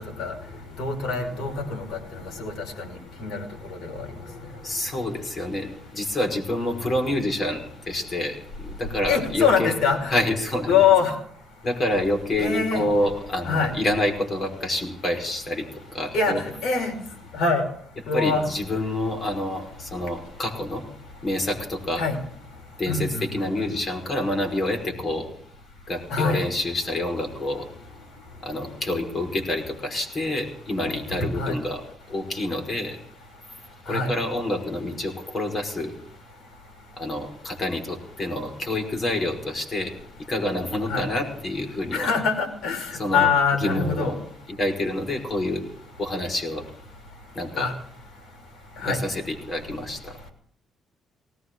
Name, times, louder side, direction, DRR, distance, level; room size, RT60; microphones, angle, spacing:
voice 1, 0.8-3.4 3.8-3.9 9.1-10.1 10.7-11.1 12.4-12.8 13.4-13.7 16.1-17.0 17.3-17.6 18.1-18.4 22.0-22.2 22.9-23.4 26.1-26.4 31.4-31.6 33.9-34.1 40.9-41.1 41.9-42.9 43.1-44.1 47.6-47.7 48.8-49.0, left 5 dB, 75° left, 5 dB, 5.3 m, -23 dB
voice 2, 4.6-7.6 7.9-9.7 10.1-10.8 11.6-15.7 15.9-16.4 18.1-20.8 21.2-22.0 22.8-25.3 25.9-27.7 28.4-31.8 32.1-33.0 33.9-35.9 37.0-39.9 40.3-42.1 42.9-43.3 43.6-44.2 44.5-45.6 46.0-46.6 47.4-47.7 48.8-50.2, left 1 dB, 40° left, 4 dB, 5.3 m, -27 dB
20.0 x 17.5 x 3.9 m, 0.64 s
cardioid pair, 90°, 0 cm